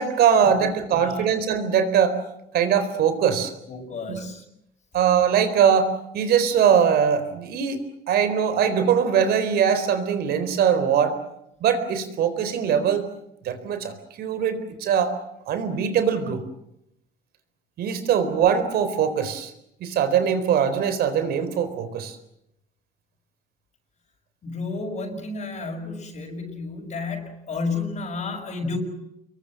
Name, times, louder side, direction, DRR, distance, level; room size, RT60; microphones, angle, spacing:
voice 1, 0.0-2.2 2.5-3.5 4.1-4.2 4.9-7.8 8.1-11.2 11.6-13.0 13.4-15.1 15.5-16.4 17.8-19.5 19.8-22.2, right 7 dB, 70° right, 10 dB, 4.2 m, -21 dB
voice 2, 3.7-4.4 24.4-28.8, left 3 dB, 45° left, 1 dB, 6.3 m, -31 dB
28.0 x 22.5 x 7.6 m, 0.81 s
cardioid pair, 110°, 17 cm